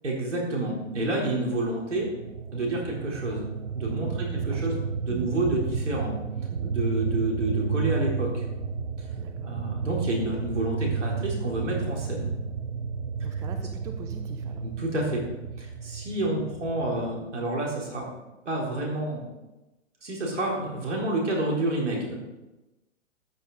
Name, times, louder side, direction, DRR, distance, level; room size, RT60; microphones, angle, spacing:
voice 1, 0.0-2.1 2.5-3.5 3.7-6.1 6.6-8.4 9.4-12.3 14.6-15.2 15.6-18.1 18.5-19.2 20.0-22.1, right 1 dB, 70° right, -2 dB, 4.2 m, -29 dB
sound 1, 1.8-17.2, right 6 dB, 55° right, 1.0 m, -32 dB
voice 2, 4.1-4.7 5.1-5.3 6.5-6.7 9.2-9.5 13.2-14.6, right 6 dB, 10° right, 5 dB, 0.5 m, -43 dB
13.5 x 8.8 x 4.2 m, 1.0 s
figure-of-eight pair, 110°, 37 cm